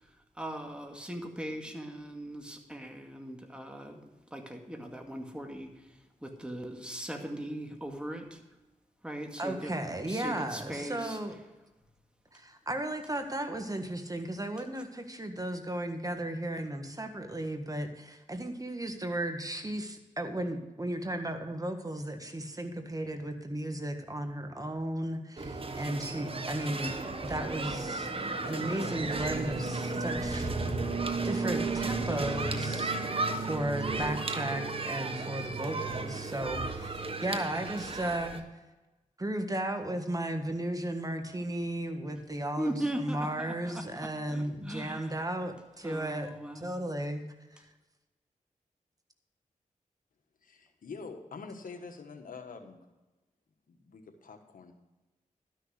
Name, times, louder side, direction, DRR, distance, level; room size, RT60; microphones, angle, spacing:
voice 1, 0.4-4.0 4.3-5.7 6.2-8.4 9.0-9.7 10.0-11.2 42.6-45.1 45.8-46.9, right 1 dB, 5° right, 3 dB, 2.2 m, -39 dB
voice 2, 9.4-11.3 12.3-26.9 27.2-30.7 31.2-33.1 33.4-38.4 39.2-47.2 47.5-47.6, right 1 dB, 25° right, 6 dB, 1.5 m, -35 dB
sound 1, 25.4-38.4, right 3 dB, 40° right, 1.3 m, -34 dB
voice 3, 50.4-52.8 53.7-54.7, left 4 dB, 75° left, 5 dB, 1.4 m, -45 dB
12.5 x 6.4 x 6.4 m, 1.1 s
cardioid pair, 50°, 14 cm